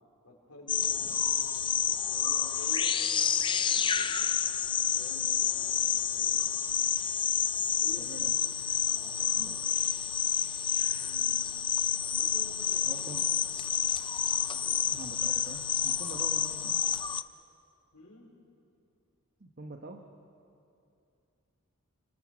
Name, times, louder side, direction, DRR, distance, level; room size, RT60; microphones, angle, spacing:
voice 1, 0.2-4.3 4.9-6.6 7.8-8.1 8.7-9.7 10.9-11.3 12.0-13.3 14.2-14.9 17.9-18.3, left 1 dB, 80° left, -4 dB, 4.4 m, -50 dB
sound 1, 0.7-17.2, left 8 dB, 20° left, 0.5 m, -29 dB
voice 2, 8.0-8.4 9.4-9.6 12.8-13.3 14.9-16.9 19.4-20.1, right 2 dB, 45° right, 4 dB, 1.2 m, -45 dB
29.5 x 26.0 x 6.4 m, 2.6 s
head